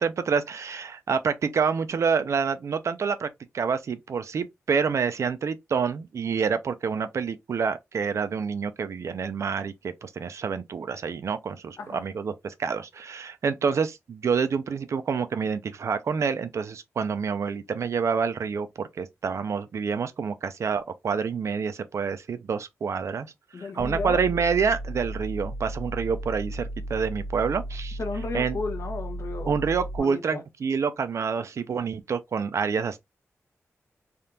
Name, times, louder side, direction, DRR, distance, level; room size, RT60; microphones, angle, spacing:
voice 1, 0.0-3.3 3.5-23.3 23.6-28.0 28.3-28.6 29.5-33.0, right 6 dB, 70° right, 0.4 m, -27 dB
voice 2, 23.5-24.2 28.0-29.6 30.0-30.4, left 3 dB, 65° left, 0.9 m, -33 dB
sound 1, 23.8-30.0, right 1 dB, 40° left, 0.5 m, -35 dB
3.5 x 2.4 x 2.7 m
wide cardioid pair, 130°, 5 cm